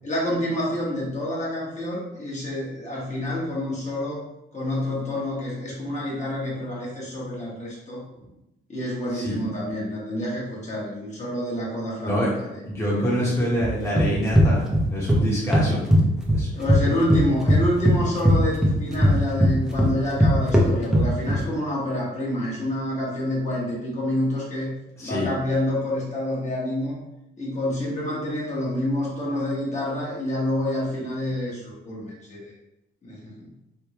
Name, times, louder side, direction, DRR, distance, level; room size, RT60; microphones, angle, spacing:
voice 1, 0.0-4.3 4.5-8.0 8.7-12.5 13.0-13.4 16.5-24.7 25.0-27.0 27.4-32.5 33.0-33.5, left 1 dB, 35° left, -5 dB, 1.4 m, -28 dB
voice 2, 12.6-15.8 16.3-16.5 16.9-17.0 25.0-25.3, equal, 15° left, -7 dB, 1.2 m, -26 dB
sound 1, 13.6-15.2 15.5-16.8 17.1-21.4, equal, ahead, 0.8 m, -19 dB
3.5 x 2.6 x 2.9 m, 0.90 s
cardioid pair, 90°, 20 cm